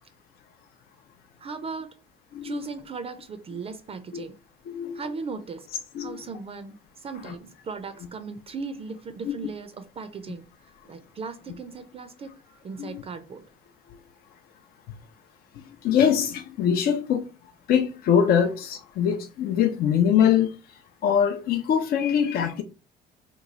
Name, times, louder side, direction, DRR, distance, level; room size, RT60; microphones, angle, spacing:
voice 1, 1.4-2.0 2.4-4.4 4.9-5.7 6.0-10.4 10.9-13.4, right 4 dB, 35° right, 0.4 m, -37 dB
voice 2, 15.8-17.3 17.7-20.5 21.0-22.6, left 8 dB, 65° left, 0.5 m, -23 dB
3.0 x 2.3 x 3.9 m
cardioid pair, 110°, 17 cm